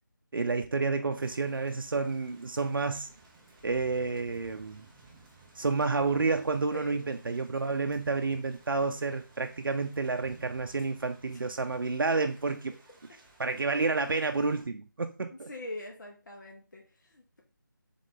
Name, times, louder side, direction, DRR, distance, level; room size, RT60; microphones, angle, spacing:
voice 1, 0.3-3.1 3.6-4.8 5.6-12.7 13.4-15.5, right 4 dB, 90° right, 0.5 m, -30 dB
Thunder / Rain, 1.1-14.6, right 3 dB, 10° right, 0.5 m, -58 dB
voice 2, 6.7-7.2 15.5-17.4, left 1 dB, 60° left, 1.1 m, -42 dB
3.8 x 3.7 x 3.7 m
figure-of-eight pair, 165°, 11 cm